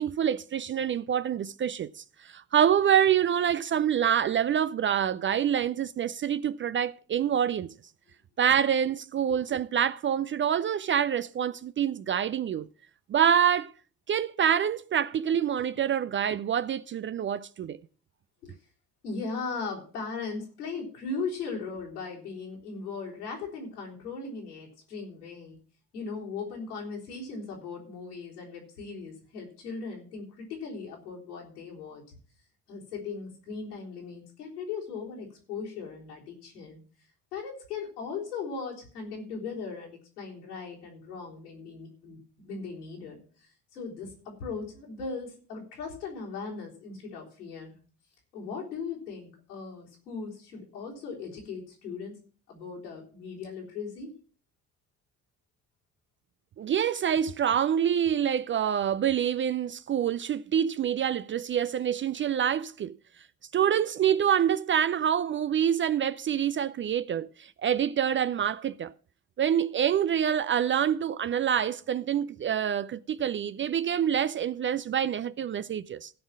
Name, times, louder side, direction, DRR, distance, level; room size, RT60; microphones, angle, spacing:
voice 1, 0.0-7.7 8.4-12.7 13.1-13.7 14.1-17.8 56.6-63.0 63.5-68.9 69.4-76.1, right 9 dB, 30° right, 0.4 m, -26 dB
voice 2, 19.0-25.6 25.9-32.2 32.7-36.8 37.3-47.8 48.3-52.2 52.5-54.1, left 4 dB, 80° left, 4.0 m, -38 dB
16.0 x 5.4 x 6.1 m
figure-of-eight pair, 45°, 45 cm